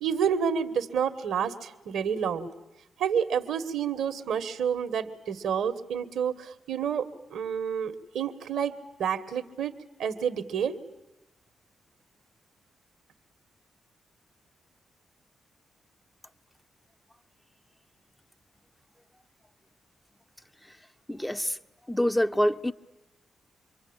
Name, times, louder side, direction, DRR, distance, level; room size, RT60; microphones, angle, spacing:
voice 1, 0.0-2.5 3.0-10.8, right 7 dB, 75° right, 1.6 m, -29 dB
voice 2, 21.1-21.6 21.9-22.7, equal, 10° left, 1.1 m, -26 dB
27.0 x 23.5 x 8.9 m
hypercardioid pair, 40°, 0 cm